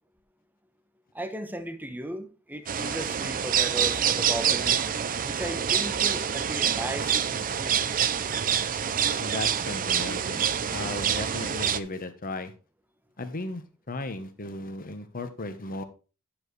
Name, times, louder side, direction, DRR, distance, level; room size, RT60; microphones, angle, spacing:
voice 1, 1.1-4.8 5.2-7.1 7.5-7.8, right 1 dB, 10° right, 1.0 m, -35 dB
sound 1, 2.7-11.8, right 8 dB, 40° right, 0.6 m, -26 dB
voice 2, 9.2-12.5 13.2-15.8, left 2 dB, 40° left, 1.1 m, -36 dB
10.5 x 7.2 x 3.3 m
head